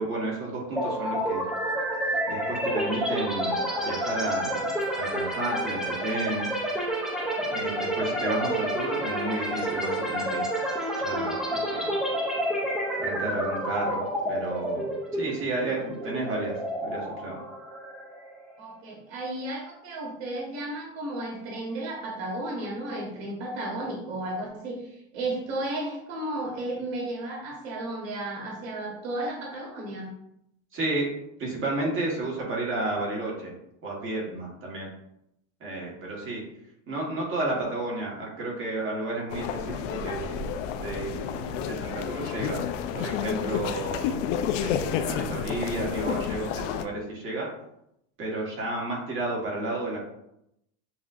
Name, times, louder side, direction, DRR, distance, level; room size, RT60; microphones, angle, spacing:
voice 1, 0.0-1.4 2.3-6.5 7.5-10.5 11.0-11.9 13.0-17.3 30.7-33.5 33.8-34.9 35.6-36.4 36.9-40.5 40.7-42.6 42.9-47.5 48.2-50.0, right 2 dB, 30° right, -3 dB, 1.4 m, -32 dB
sound 1, 0.8-18.5, equal, ahead, 0.4 m, -29 dB
voice 2, 18.6-30.1, right 1 dB, 85° right, -2 dB, 1.2 m, -33 dB
sound 2, 39.3-46.8, left 8 dB, 70° left, 0.5 m, -30 dB
7.1 x 2.4 x 2.5 m, 0.79 s
supercardioid pair, 140°, 38 cm